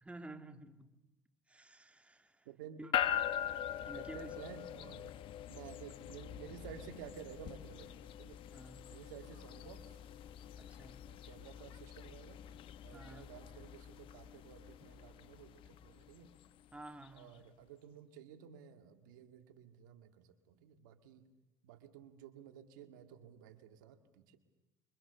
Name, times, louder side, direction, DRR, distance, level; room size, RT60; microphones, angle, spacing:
voice 1, 0.0-0.9 1.5-2.5 2.8-2.9 3.8-4.3 5.4-5.7 8.5-8.9 10.6-11.0 12.9-13.3 16.7-17.3, right 2 dB, 10° right, 8 dB, 2.2 m, -52 dB
voice 2, 2.5-2.8 3.9-5.1 5.5-8.4 8.9-10.0 11.1-12.4 12.8-16.3 17.1-21.3 21.6-24.4, right 9 dB, 85° right, 8 dB, 2.1 m, -53 dB
sound 1, 2.9-17.2, left 11 dB, 60° left, 1.1 m, -43 dB
27.0 x 24.0 x 7.0 m, 1.0 s
supercardioid pair, 75°, 10 cm